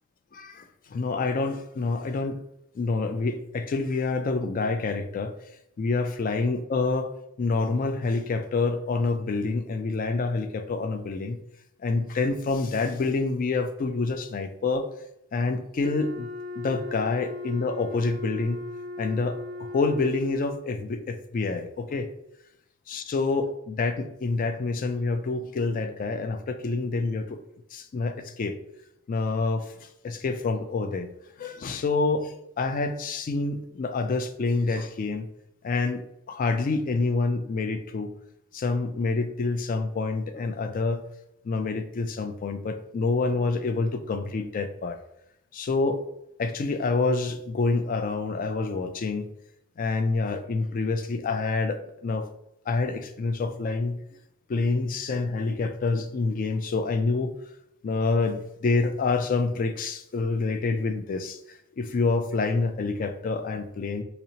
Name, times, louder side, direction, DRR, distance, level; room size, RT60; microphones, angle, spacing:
voice 1, 0.3-2.4 2.7-5.3 5.8-7.1 7.4-11.4 11.8-14.9 15.3-16.3 16.6-18.6 19.0-22.1 22.9-27.4 27.7-28.6 29.1-31.1 31.4-35.3 35.6-38.1 38.5-41.0 41.4-45.0 45.5-46.0 46.4-49.3 49.8-52.3 52.7-54.0 54.5-57.3 57.8-64.0, left 3 dB, 40° left, 9 dB, 0.3 m, -27 dB
Wind instrument woodwind instrument, 15.8-20.5, left 2 dB, 55° right, 0.4 m, -38 dB
4.1 x 2.9 x 2.7 m, 0.79 s
head